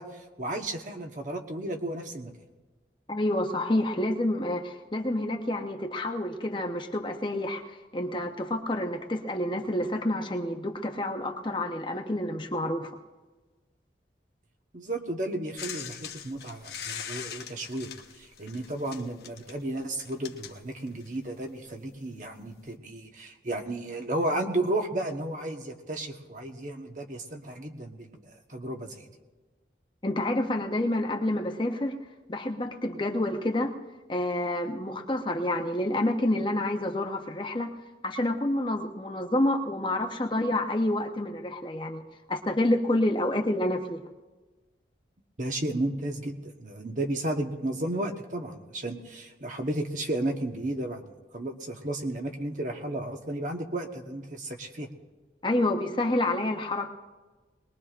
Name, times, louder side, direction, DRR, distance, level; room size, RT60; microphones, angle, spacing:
voice 1, 0.0-2.3 14.7-17.9 18.2-29.1 45.4-51.0 51.3-54.9, right 1 dB, 45° right, 4 dB, 1.2 m, -33 dB
voice 2, 3.1-7.6 7.9-12.9 30.0-32.0 32.3-33.8 34.1-37.7 38.0-42.0 42.3-44.0 55.4-56.9, left 1 dB, 25° left, 3 dB, 0.9 m, -28 dB
sound 1, 15.6-21.3 22.2-22.3, left 8 dB, 65° left, 1.0 m, -41 dB
22.0 x 20.5 x 2.5 m, 1.3 s
head